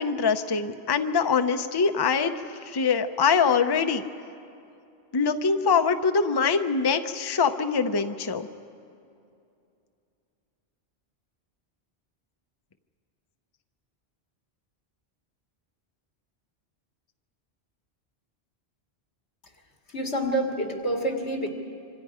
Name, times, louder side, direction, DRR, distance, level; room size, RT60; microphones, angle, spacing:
voice 1, 0.0-2.3 2.6-4.0 5.1-8.5, left 5 dB, 25° left, 8 dB, 0.6 m, -23 dB
voice 2, 19.9-21.5, right 1 dB, 90° left, 2 dB, 2.4 m, -27 dB
26.0 x 25.5 x 5.0 m, 2.5 s
omnidirectional pair, 1.1 m